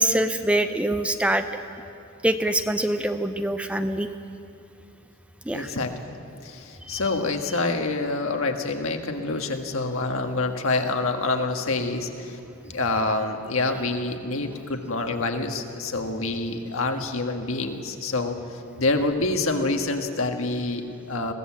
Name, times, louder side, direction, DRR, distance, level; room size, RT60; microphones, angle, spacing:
voice 1, 0.0-1.4 2.2-4.1 5.5-5.7 6.9-7.2, right 1 dB, 5° right, 8 dB, 0.5 m, -24 dB
voice 2, 5.5-6.2 6.4-12.4 12.6-18.4 18.8-21.3, left 2 dB, 65° left, 5 dB, 1.6 m, -27 dB
22.0 x 16.5 x 7.5 m, 2.6 s
head